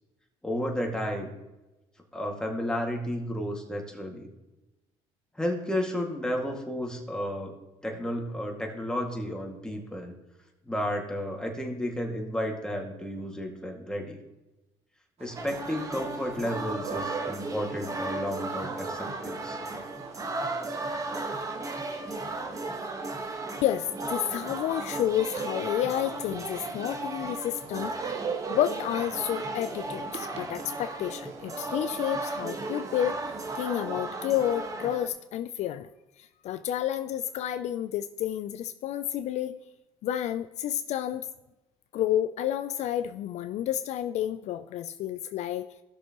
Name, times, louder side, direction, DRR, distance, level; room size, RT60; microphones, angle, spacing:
voice 1, 0.4-1.3 2.1-4.3 5.4-7.6 7.8-10.1 10.6-14.2 15.2-19.6, equal, 5° left, 1 dB, 2.1 m, -32 dB
sound 1, 15.2-34.5, right 6 dB, 55° right, 1.2 m, -44 dB
sound 2, 15.3-35.1, right 2 dB, 25° right, 1.4 m, -35 dB
voice 2, 23.6-28.2 28.5-35.9 36.2-39.6 40.0-41.3 41.9-45.7, left 11 dB, 60° left, 10 dB, 0.5 m, -30 dB
15.5 x 6.7 x 3.0 m, 1.0 s
supercardioid pair, 90°, 13 cm